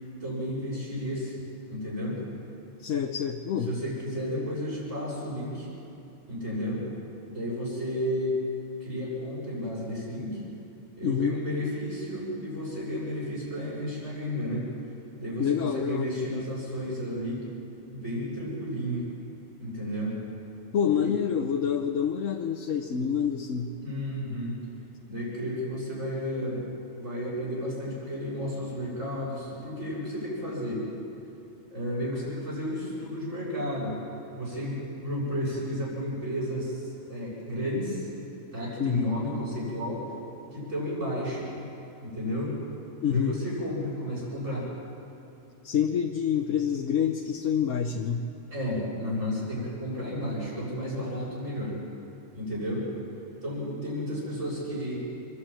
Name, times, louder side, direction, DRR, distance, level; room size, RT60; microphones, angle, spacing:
voice 1, 0.2-1.4 1.7-2.5 3.7-5.7 6.3-6.8 7.3-8.3 8.8-10.4 11.0-14.7 15.2-17.4 17.9-19.0 19.6-20.1 21.0-21.1 23.8-24.5 25.1-26.6 27.0-30.8 31.7-33.9 34.3-38.1 38.5-40.0 40.5-41.6 42.0-42.6 43.1-44.7 48.5-51.8 52.3-52.9 53.4-55.0, equal, 80° right, -6 dB, 7.4 m, -32 dB
voice 2, 2.8-3.8 11.0-11.4 15.4-16.1 20.7-23.7 38.8-39.1 43.0-43.4 45.6-48.3, left 8 dB, 85° left, 2 dB, 1.2 m, -27 dB
26.0 x 11.5 x 8.8 m, 2.8 s
omnidirectional pair, 1.3 m